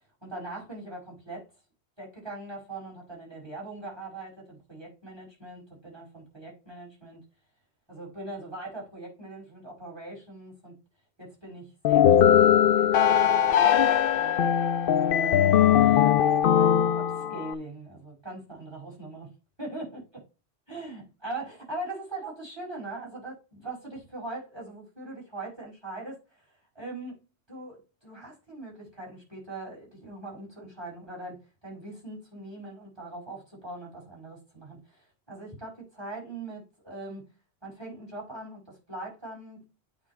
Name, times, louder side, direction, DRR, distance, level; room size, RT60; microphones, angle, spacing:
voice 1, 0.2-1.5 2.0-7.2 7.9-10.7 11.2-14.5 15.2-16.2 16.5-19.3 19.6-20.0 20.7-37.3 37.6-39.7, right 2 dB, 25° right, 5.7 m, -41 dB
sound 1, 11.8-17.5, left 9 dB, 65° left, 0.7 m, -20 dB
8.7 x 4.4 x 4.6 m
omnidirectional pair, 1.1 m